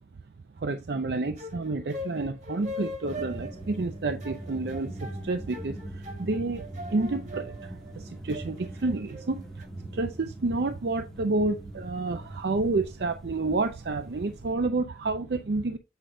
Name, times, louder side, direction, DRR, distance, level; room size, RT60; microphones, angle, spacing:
voice 1, 0.6-6.6 6.9-15.8, right 3 dB, 70° right, 0.5 m, -30 dB
sound 1, 1.1-9.7, left 1 dB, 45° right, 1.3 m, -41 dB
sound 2, 3.0-14.5, right 1 dB, 5° left, 0.8 m, -42 dB
8.0 x 4.9 x 2.6 m
head